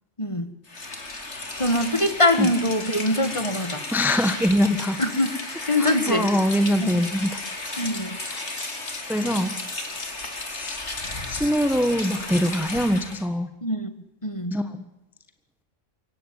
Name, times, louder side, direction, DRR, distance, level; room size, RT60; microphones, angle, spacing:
voice 1, 0.2-0.5 1.6-3.8 5.0-5.4 5.7-6.3 6.8-7.0 7.8-8.2 13.6-13.9 14.2-14.6, left 1 dB, 25° left, 10 dB, 1.9 m, -23 dB
Rain, 0.6-13.2, left 2 dB, 60° left, 3.4 m, -34 dB
voice 2, 3.9-5.0 5.8-7.4 8.3-8.5 9.1-9.6 9.9-10.1 10.5-10.8 11.3-13.5 14.5-14.8, equal, ahead, 9 dB, 1.3 m, -23 dB
23.5 x 17.5 x 9.1 m, 0.95 s
omnidirectional pair, 1.3 m